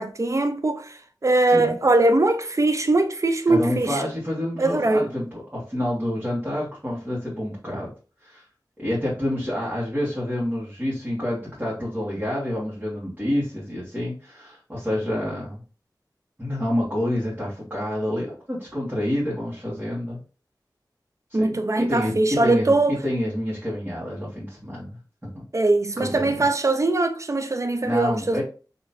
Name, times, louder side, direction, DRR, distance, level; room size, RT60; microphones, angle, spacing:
voice 1, 0.0-4.0 4.6-5.1 21.3-23.0 25.5-28.4, right 2 dB, 40° right, 0.5 m, -21 dB
voice 2, 3.5-7.9 8.2-8.4 8.8-15.6 16.4-20.2 21.3-22.8 23.0-25.0 25.3-25.4 26.0-26.4 27.8-28.4, left 1 dB, 20° right, 1.7 m, -28 dB
4.0 x 3.0 x 2.6 m
wide cardioid pair, 45°, 8 cm